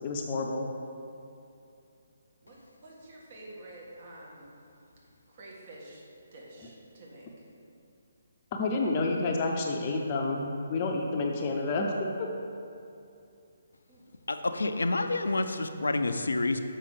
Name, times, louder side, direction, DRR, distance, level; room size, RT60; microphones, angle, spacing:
voice 1, 0.0-0.7 8.5-12.3, left 3 dB, 30° left, 0 dB, 0.7 m, -29 dB
voice 2, 2.4-4.5 5.3-6.0 6.3-7.5 13.9-14.1, right 1 dB, 40° right, -4 dB, 1.7 m, -49 dB
voice 3, 14.3-16.6, left 2 dB, 70° left, 8 dB, 0.5 m, -28 dB
6.7 x 5.5 x 5.0 m, 2.6 s
figure-of-eight pair, 140°, 0 cm